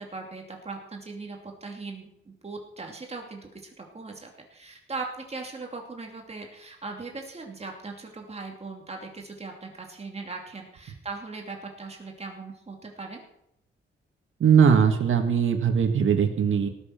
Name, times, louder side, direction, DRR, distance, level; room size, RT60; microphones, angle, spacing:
voice 1, 0.0-13.2, right 3 dB, 30° right, 1 dB, 2.8 m, -39 dB
voice 2, 14.4-16.7, right 7 dB, 75° right, 5 dB, 1.9 m, -20 dB
18.5 x 7.2 x 5.9 m, 0.76 s
wide cardioid pair, 115°, 21 cm